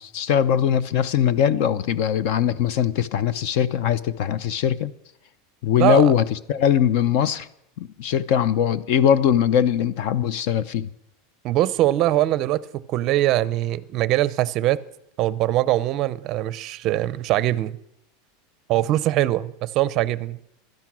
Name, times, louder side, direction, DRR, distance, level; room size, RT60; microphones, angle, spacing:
voice 1, 0.0-4.9 5.6-7.5 7.8-10.9, left 9 dB, 50° left, 0.6 m, -21 dB
voice 2, 5.8-6.1 11.4-12.6 12.9-14.8 15.2-17.8 18.7-20.4, right 14 dB, 35° right, 0.5 m, -22 dB
16.5 x 12.0 x 6.1 m
supercardioid pair, 170°, 0 cm